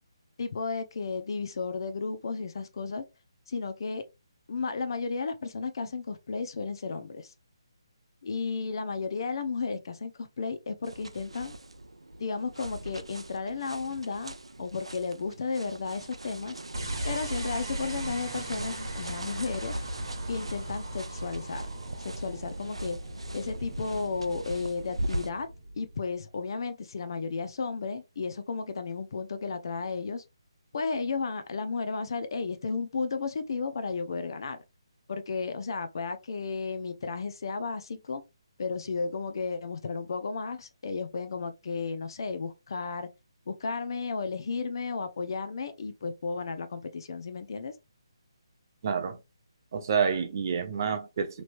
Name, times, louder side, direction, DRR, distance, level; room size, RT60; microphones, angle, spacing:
voice 1, 0.4-3.0 3.5-4.0 4.5-7.3 8.2-11.5 12.2-16.6 17.0-19.8 20.3-21.7 22.0-23.0 23.3-25.5 25.8-30.2 30.7-34.6 35.1-38.2 38.6-43.1 43.5-47.7, left 4 dB, 55° left, 0.6 m, -33 dB
sound 1, 10.8-25.3, right 1 dB, 90° right, 0.5 m, -40 dB
sound 2, 16.7-26.1, right 1 dB, 65° right, 1.0 m, -38 dB
voice 2, 48.8-49.2 49.7-51.4, right 6 dB, 40° right, 0.6 m, -28 dB
3.0 x 3.0 x 2.5 m
figure-of-eight pair, 150°, 3 cm